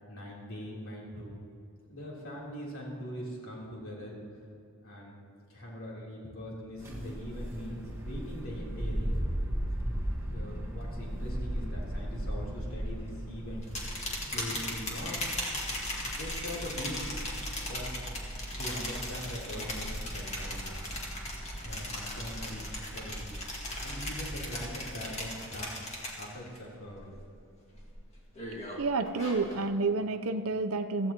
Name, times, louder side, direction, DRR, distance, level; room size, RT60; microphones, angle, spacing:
voice 1, 0.1-1.4 1.9-4.4 4.8-5.2 5.5-9.2 10.3-13.6 14.3-15.2 16.1-17.3 17.6-17.9 18.6-20.7 21.6-23.4 23.8-25.7 26.2-27.2, equal, 70° left, -4 dB, 3.5 m, -41 dB
sound 1, 6.8-25.4, equal, 10° right, 1.5 m, -38 dB
sound 2, 13.6-26.6 26.9-27.4 27.8-29.7, left 1 dB, 30° left, 2.0 m, -38 dB
voice 2, 28.8-31.1, right 3 dB, 75° right, 8 dB, 0.7 m, -29 dB
16.0 x 14.5 x 3.0 m, 2.6 s
head